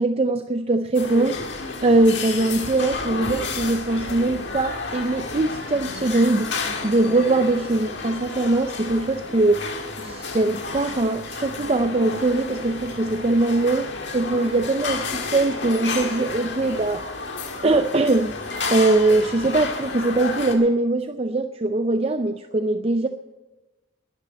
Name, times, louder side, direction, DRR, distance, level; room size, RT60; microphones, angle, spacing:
voice 1, 0.0-1.4 1.8-9.6 10.0-13.9 14.1-17.0 17.6-18.3 18.7-23.1, right 2 dB, 30° right, 8 dB, 0.5 m, -21 dB
sound 1, 0.9-20.5, left 3 dB, 60° left, 1.8 m, -31 dB
10.5 x 10.5 x 9.0 m, 1.1 s
head